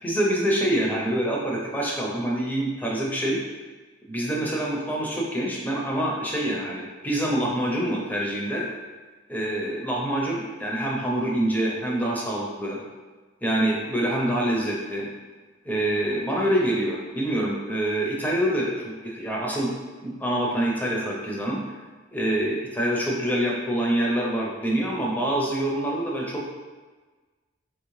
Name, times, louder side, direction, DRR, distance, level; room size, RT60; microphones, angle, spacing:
voice 1, 0.0-3.4 4.1-8.7 9.3-12.8 13.4-15.1 15.6-19.7 20.0-21.8 22.1-26.6, right 1 dB, 10° left, -3 dB, 0.5 m, -26 dB
3.5 x 3.0 x 3.1 m, 1.3 s
head